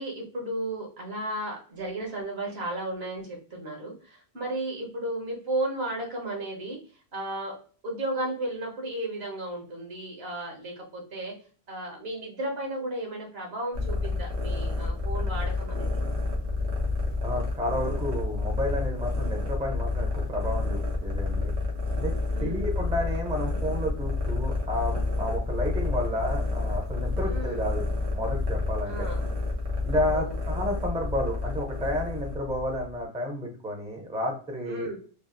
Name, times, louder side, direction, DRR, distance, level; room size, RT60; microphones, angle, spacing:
voice 1, 0.0-6.8 7.1-11.3 11.7-15.9 22.3-22.7 27.2-27.7 28.8-29.2 29.9-30.4 34.7-35.0, right 1 dB, 70° right, -1 dB, 1.4 m, -34 dB
sound 1, 13.7-33.0, left 3 dB, 90° right, 1.2 m, -29 dB
voice 2, 17.2-21.5 22.0-22.1 22.4-27.8 28.1-28.9 29.8-34.9, left 1 dB, 10° right, 1 dB, 0.4 m, -31 dB
3.2 x 2.4 x 2.5 m, 0.40 s
omnidirectional pair, 1.1 m